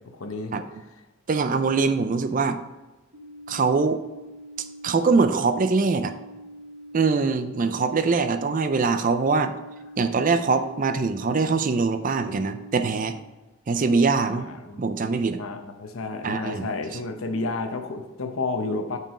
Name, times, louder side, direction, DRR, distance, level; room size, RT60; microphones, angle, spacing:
voice 1, 0.1-0.5 14.3-14.8 15.4-19.0, left 3 dB, 90° left, 6 dB, 0.8 m, -31 dB
voice 2, 1.3-2.6 3.5-4.0 4.8-6.1 6.9-9.5 10.0-13.1 13.7-14.5 14.8-15.4 16.2-16.7, right 4 dB, 40° right, 9 dB, 0.4 m, -23 dB
sound 1, 3.1-13.1, right 1 dB, 70° right, 1.0 m, -44 dB
6.1 x 4.6 x 4.8 m, 1.1 s
head